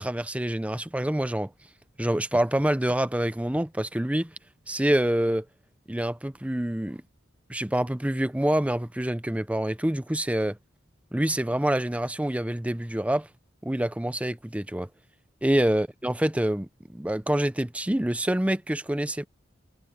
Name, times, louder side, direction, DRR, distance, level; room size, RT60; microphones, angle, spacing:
voice 1, 0.0-1.5 2.0-4.3 4.7-5.4 5.9-7.0 7.5-10.6 11.1-13.3 13.6-14.9 15.4-19.3, right 1 dB, 5° right, 0.5 m, -26 dB
head